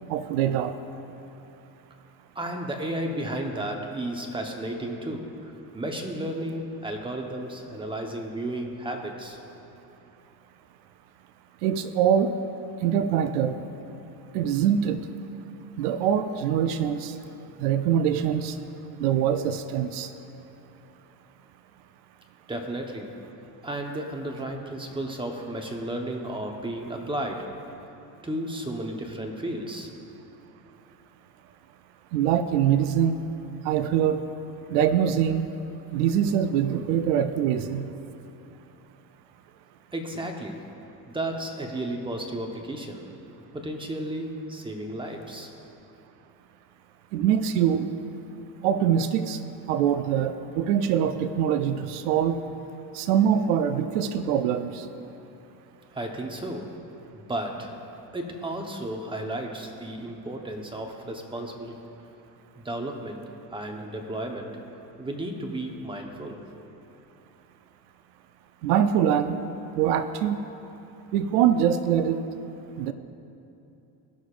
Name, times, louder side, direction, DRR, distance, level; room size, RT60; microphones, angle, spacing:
voice 1, 0.1-0.7 11.6-12.4 12.8-13.6 14.3-15.0 15.8-17.1 17.6-18.5 19.0-20.1 32.1-33.2 33.6-34.2 34.7-35.5 35.9-37.9 47.1-47.9 48.6-49.4 49.7-52.4 52.9-54.8 68.6-69.4 69.8-70.4 71.1-72.2 72.8-72.9, right 9 dB, 85° right, 10 dB, 0.6 m, -23 dB
voice 2, 2.3-9.4 22.5-23.2 23.6-27.6 28.2-29.9 39.9-40.6 41.1-43.1 43.5-45.5 55.9-56.7 57.1-57.7 58.1-61.8 62.6-63.2 63.5-64.6 65.0-66.4, right 1 dB, 10° right, 2 dB, 1.0 m, -33 dB
18.0 x 6.4 x 2.5 m, 2.9 s
supercardioid pair, 105°, 44 cm